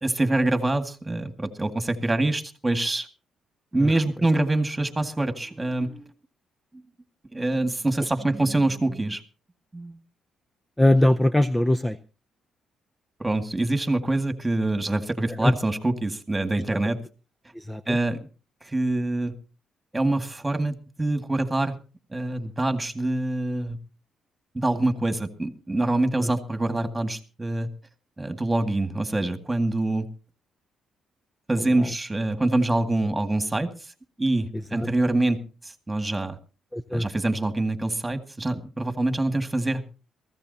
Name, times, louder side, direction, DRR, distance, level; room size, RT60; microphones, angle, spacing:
voice 1, 0.0-3.1 3.7-6.1 7.3-9.2 9.7-10.0 13.2-17.0 17.9-18.2 18.6-19.3 19.9-21.8 22.1-23.8 24.5-27.7 28.2-30.1 31.5-33.9 34.2-36.4 36.9-39.8, right 2 dB, 15° right, 7 dB, 2.0 m, -25 dB
voice 2, 10.8-12.0 15.4-15.5 17.6-18.0 26.2-26.3 34.7-34.9 36.7-37.1, left 1 dB, 10° left, 9 dB, 0.6 m, -21 dB
22.5 x 15.0 x 2.8 m, 0.34 s
cardioid pair, 90°, 0 cm